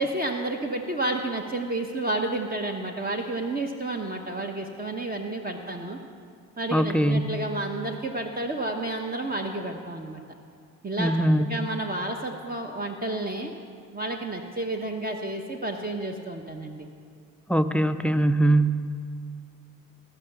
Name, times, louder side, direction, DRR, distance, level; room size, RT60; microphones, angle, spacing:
voice 1, 0.0-6.0 6.6-10.2 10.8-11.1 11.4-13.5 13.9-16.9, right 2 dB, 25° right, 2 dB, 1.0 m, -30 dB
voice 2, 6.7-7.4 11.0-11.6 17.5-18.8, right 1 dB, 5° left, 9 dB, 0.5 m, -22 dB
15.0 x 5.5 x 6.9 m, 2.2 s
supercardioid pair, 65°, 37 cm